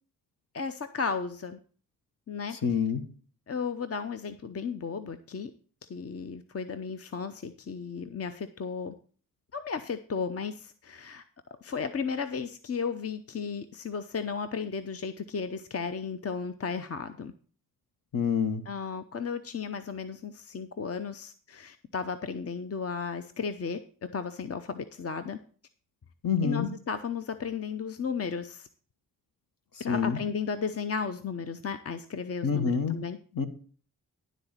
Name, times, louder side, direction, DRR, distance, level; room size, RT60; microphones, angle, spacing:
voice 1, 0.5-1.6 2.3-2.6 3.5-5.5 5.9-9.0 9.5-11.2 11.6-17.3 18.7-23.8 24.1-25.4 26.4-28.7 29.8-33.2, left 5 dB, 40° left, 10 dB, 0.7 m, -34 dB
voice 2, 2.6-3.0 18.1-18.6 26.2-26.7 29.9-30.2 32.4-33.0 33.4-33.5, left 6 dB, 60° left, 8 dB, 1.5 m, -26 dB
11.5 x 4.0 x 7.3 m, 0.42 s
cardioid pair, 45°, 38 cm